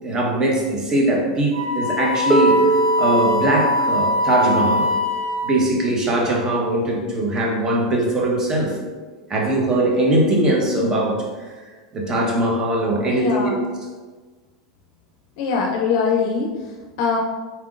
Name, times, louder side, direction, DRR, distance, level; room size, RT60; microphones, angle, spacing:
voice 1, 0.0-4.9 5.4-8.8 9.3-11.5 11.9-13.6, right 1 dB, 30° right, -2 dB, 1.1 m, -21 dB
Wind instrument woodwind instrument, 1.5-5.7, left 1 dB, 80° right, 0.7 m, -22 dB
Harp, 2.3-8.1 9.1-9.2, right 4 dB, 10° right, 0.5 m, -26 dB
voice 2, 13.1-13.6 15.4-17.2, left 5 dB, 60° left, -1 dB, 0.5 m, -22 dB
4.3 x 3.5 x 2.5 m, 1.4 s
hypercardioid pair, 90°, 2 cm